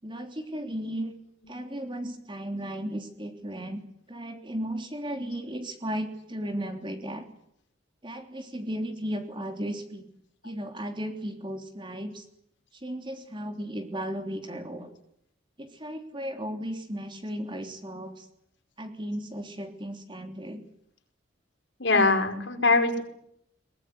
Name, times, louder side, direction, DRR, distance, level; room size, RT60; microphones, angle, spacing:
voice 1, 0.0-1.1 1.5-3.8 4.1-7.2 8.0-10.0 10.4-12.3 12.7-14.9 15.6-18.3 18.8-20.6, equal, 25° right, 5 dB, 3.3 m, -35 dB
voice 2, 21.8-23.0, left 3 dB, 65° left, 4 dB, 5.1 m, -24 dB
22.5 x 21.5 x 9.8 m, 0.72 s
head